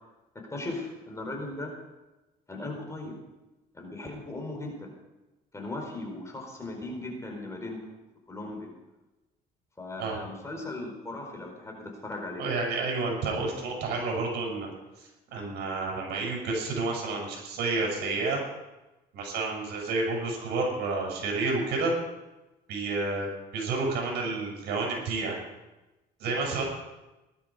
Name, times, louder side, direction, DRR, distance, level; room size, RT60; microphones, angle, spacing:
voice 1, 0.5-1.7 2.5-3.2 3.7-4.9 5.5-7.8 8.3-8.7 9.8-12.4, left 2 dB, 15° left, 1 dB, 4.6 m, -37 dB
voice 2, 12.4-14.7 15.3-18.4 19.1-21.9 22.7-25.4 26.2-26.6, right 3 dB, 80° right, -1 dB, 6.9 m, -30 dB
18.5 x 12.0 x 5.1 m, 1.0 s
cardioid pair, 110°, 17 cm